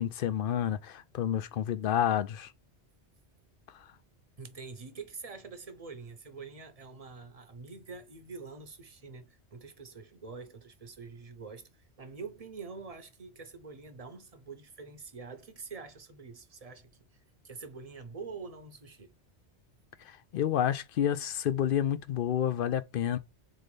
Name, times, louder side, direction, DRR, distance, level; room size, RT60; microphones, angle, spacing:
voice 1, 0.0-2.5 20.1-23.2, left 10 dB, 60° left, 0.6 m, -29 dB
voice 2, 4.4-19.1, right 4 dB, 35° right, 0.8 m, -46 dB
3.9 x 3.8 x 3.1 m
omnidirectional pair, 1.1 m